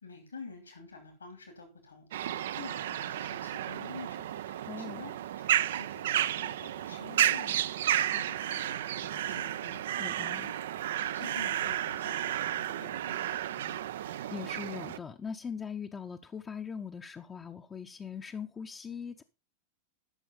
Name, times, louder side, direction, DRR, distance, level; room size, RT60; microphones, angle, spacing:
voice 1, 0.0-5.2 5.4-9.8 10.4-10.6 11.0-13.8, left 4 dB, 75° left, 2.7 m, -49 dB
sound 1, 2.1-15.0, right 11 dB, 60° right, 0.4 m, -32 dB
voice 2, 4.7-5.0 10.0-10.5 14.0-19.2, left 6 dB, 20° left, 0.7 m, -41 dB
12.0 x 6.3 x 5.3 m
figure-of-eight pair, 90°, 0 cm